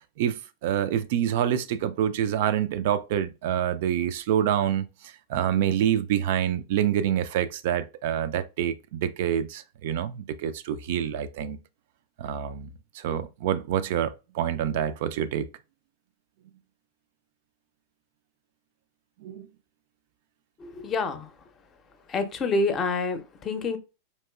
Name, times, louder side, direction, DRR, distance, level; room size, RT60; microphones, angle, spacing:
voice 1, 0.2-11.6 12.2-12.7 12.9-15.5 19.2-19.5, right 10 dB, 50° right, 0.3 m, -27 dB
voice 2, 20.6-21.3 22.1-23.8, left 3 dB, 25° left, 0.6 m, -27 dB
4.2 x 2.9 x 2.2 m
figure-of-eight pair, 90°, 0 cm